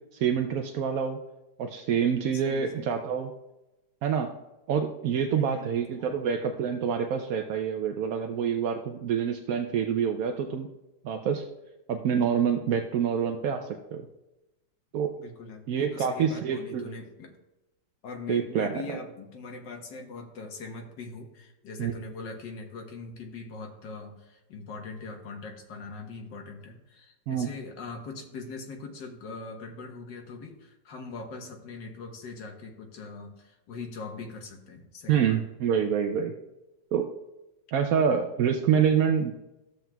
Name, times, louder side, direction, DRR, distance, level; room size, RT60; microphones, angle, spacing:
voice 1, 0.1-1.2 1.6-3.3 4.0-4.3 4.7-10.7 11.0-11.5 11.9-14.1 14.9-15.1 15.7-16.9 18.3-19.0 21.8-21.9 27.3-27.5 35.1-36.3 36.9-37.1 37.7-39.3, right 7 dB, 70° right, 5 dB, 0.8 m, -27 dB
voice 2, 2.3-3.1 5.3-6.1 12.7-12.8 15.2-17.3 18.0-35.4, left 3 dB, 75° left, 3 dB, 1.8 m, -41 dB
13.0 x 7.4 x 2.3 m, 1.0 s
omnidirectional pair, 1.9 m